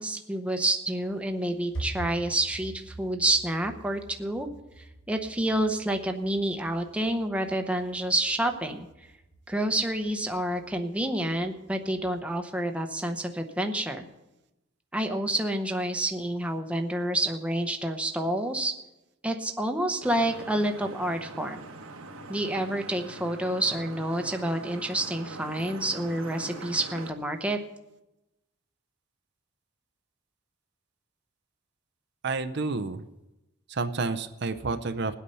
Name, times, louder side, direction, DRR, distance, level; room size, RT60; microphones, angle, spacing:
voice 1, 0.0-4.5 4.8-8.9 9.5-14.0 14.9-18.7 19.2-21.6 22.3-27.6, right 1 dB, 5° right, 5 dB, 0.8 m, -28 dB
sound 1, 0.8-12.2, right 2 dB, 60° left, 3.1 m, -45 dB
Vehicle horn car horn honking / Traffic noise roadway noise, 20.0-27.1, right 2 dB, 85° right, 1.4 m, -43 dB
voice 2, 32.2-33.0 33.7-35.2, right 3 dB, 55° right, 9 dB, 0.6 m, -30 dB
19.5 x 8.4 x 5.6 m, 0.96 s
head